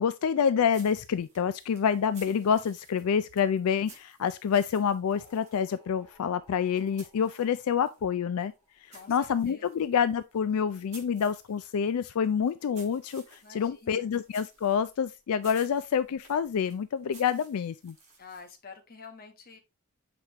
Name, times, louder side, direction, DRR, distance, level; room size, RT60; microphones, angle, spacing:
voice 1, 0.0-8.5 8.8-18.0, left 7 dB, 80° left, 0.4 m, -27 dB
sound 1, 0.7-8.0 8.4-18.6, right 3 dB, 30° right, 3.8 m, -56 dB
sound 2, 5.1-9.3, equal, 5° left, 3.6 m, -60 dB
voice 2, 8.9-9.7 13.4-14.1 18.2-19.6, left 4 dB, 40° left, 1.2 m, -48 dB
7.3 x 5.1 x 2.9 m
head